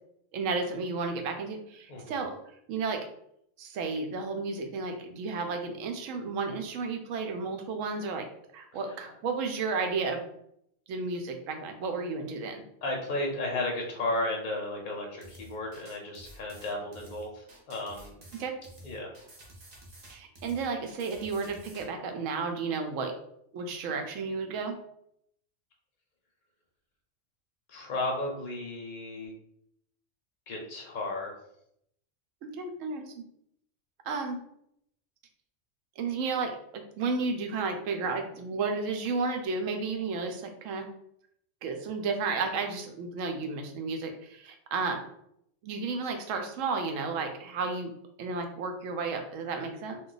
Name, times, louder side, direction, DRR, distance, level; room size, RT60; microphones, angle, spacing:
voice 1, 0.3-2.4 2.7-3.0 3.6-8.3 8.5-10.2 10.9-12.6 18.4-18.5 20.1-23.1 23.5-24.8 32.4-33.2 34.1-34.4 36.0-40.9 41.6-45.0 45.6-47.9 48.2-50.0, right 4 dB, 90° right, 4 dB, 1.0 m, -32 dB
voice 2, 1.9-2.2 12.8-18.2 18.8-19.1 27.7-29.3 30.5-31.3, left 2 dB, 50° left, 0 dB, 0.6 m, -34 dB
sound 1, 15.2-21.9, right 1 dB, 45° right, 0.6 m, -51 dB
2.3 x 2.2 x 3.8 m, 0.73 s
omnidirectional pair, 1.3 m